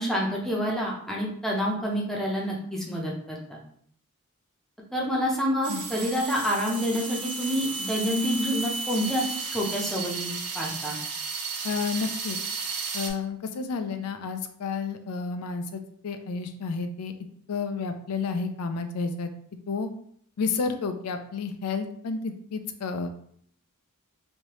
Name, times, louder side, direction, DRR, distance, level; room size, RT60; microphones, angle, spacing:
voice 1, 0.0-3.6 4.9-10.3 10.5-11.0, equal, ahead, -3 dB, 0.6 m, -28 dB
sound 1, 5.6-13.1, right 4 dB, 85° right, 0.7 m, -33 dB
voice 2, 11.6-12.4 12.9-17.1 17.5-19.3 19.7-19.9 20.4-23.2, left 4 dB, 90° left, 7 dB, 0.4 m, -31 dB
3.2 x 2.7 x 2.9 m, 0.64 s
head